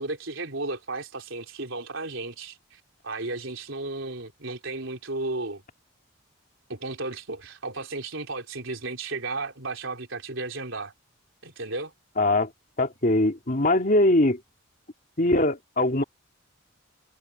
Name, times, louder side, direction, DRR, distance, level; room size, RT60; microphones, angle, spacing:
voice 1, 0.0-5.6 6.7-10.9 11.4-11.9, right 2 dB, 65° right, 3.8 m, -34 dB
voice 2, 12.2-12.5 12.8-14.4 15.2-16.0, left 1 dB, 40° left, 2.8 m, -21 dB
head